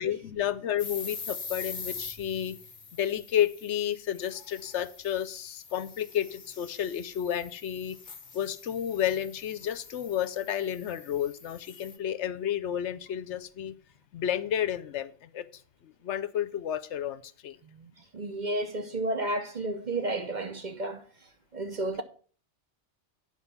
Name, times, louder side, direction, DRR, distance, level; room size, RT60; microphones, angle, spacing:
voice 1, 0.0-2.6 2.9-8.0 8.3-13.7 14.1-15.5 15.8-17.6, left 10 dB, 70° left, 0.9 m, -31 dB
sound 1, 0.8-12.0, left 5 dB, 45° left, 1.2 m, -44 dB
voice 2, 17.7-21.0 21.5-22.0, right 2 dB, 40° right, 0.9 m, -32 dB
10.0 x 4.7 x 6.9 m
omnidirectional pair, 1.2 m